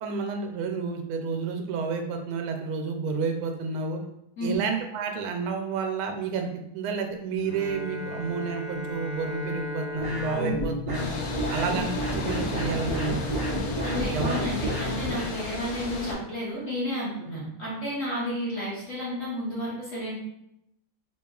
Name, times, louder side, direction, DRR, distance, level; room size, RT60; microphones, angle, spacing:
voice 1, 0.0-4.0 4.4-11.1 11.5-13.4 14.1-14.4, right 5 dB, 90° right, 4 dB, 1.5 m, -30 dB
Bowed string instrument, 7.4-12.0, left 1 dB, 30° right, 0.9 m, -37 dB
sound 1, 10.0-15.3, equal, 70° right, 0.4 m, -30 dB
sound 2, 10.9-16.1, left 2 dB, 85° left, 1.5 m, -34 dB
voice 2, 13.8-20.2, equal, 55° left, -7 dB, 1.0 m, -32 dB
4.5 x 2.9 x 2.3 m, 0.80 s
omnidirectional pair, 2.3 m